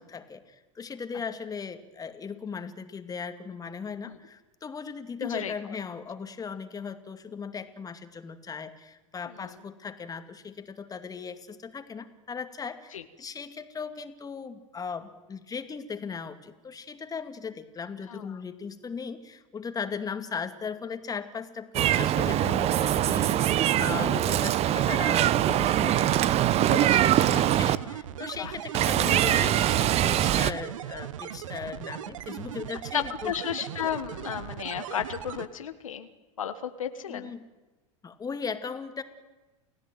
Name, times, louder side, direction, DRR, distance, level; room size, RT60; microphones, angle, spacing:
voice 1, 0.0-26.5 27.2-33.3 37.1-37.4 38.0-39.0, left 6 dB, 20° left, 8 dB, 2.3 m, -38 dB
voice 2, 5.2-5.8 9.2-9.6 12.9-13.0 18.1-18.4 22.3-22.6 26.6-27.4 27.8-28.0 28.4-28.5 29.0-29.5 32.9-36.1 36.4-37.3, left 9 dB, 80° left, 9 dB, 1.5 m, -34 dB
Meow, 21.7-27.8 28.7-30.5, right 12 dB, 40° right, 0.9 m, -23 dB
sound 1, 25.9-35.5, right 11 dB, 75° right, 1.2 m, -39 dB
29.0 x 16.5 x 9.3 m, 1.2 s
hypercardioid pair, 90°, 17 cm